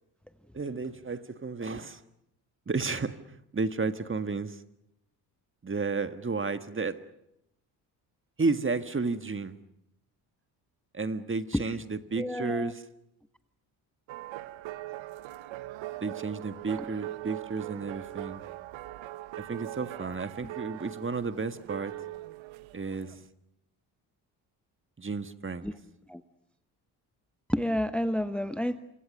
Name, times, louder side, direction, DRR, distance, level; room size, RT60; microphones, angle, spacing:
voice 1, 0.5-2.0 2.7-3.1 3.5-4.5 5.6-7.0 8.4-9.5 10.9-12.8 16.0-18.4 19.4-21.9 22.7-23.1 25.0-25.7, right 4 dB, 25° right, 1.7 m, -32 dB
voice 2, 12.2-12.7 20.4-20.5 25.6-25.8 26.1-26.2 27.5-28.8, equal, ahead, 1.0 m, -30 dB
sound 1, 14.1-23.3, right 16 dB, 70° right, 1.0 m, -41 dB
27.0 x 25.0 x 6.6 m
hypercardioid pair, 55°, 48 cm